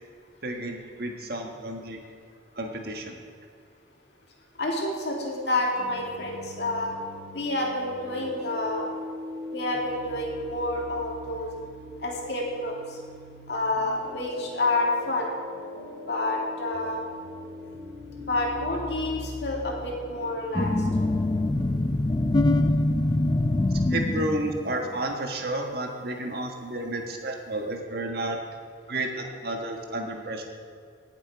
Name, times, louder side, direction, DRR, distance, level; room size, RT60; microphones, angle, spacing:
voice 1, 0.4-2.0 2.5-3.2 23.7-28.4 28.9-30.5, right 1 dB, 55° right, 3 dB, 1.6 m, -31 dB
voice 2, 4.6-6.9 7.3-8.9 9.5-11.5 12.0-12.8 13.5-15.3 16.1-17.0 18.3-20.7, left 2 dB, 60° left, -1 dB, 2.4 m, -28 dB
sound 1, 5.7-21.7, left 1 dB, 25° right, 3.2 m, -41 dB
sound 2, 20.5-24.8, left 2 dB, 25° left, 0.4 m, -24 dB
18.0 x 7.6 x 4.8 m, 2.2 s
head